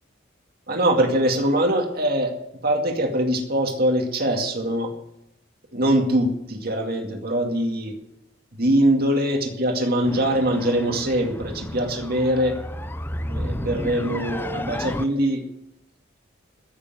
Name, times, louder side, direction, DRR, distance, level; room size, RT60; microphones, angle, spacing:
voice 1, 0.7-2.3 2.6-4.9 5.7-8.0 8.5-12.6 13.3-15.4, right 1 dB, 50° right, 3 dB, 2.2 m, -22 dB
sound 1, 10.0-15.0, left 1 dB, 10° left, 0.6 m, -32 dB
15.0 x 6.9 x 9.3 m, 0.81 s
head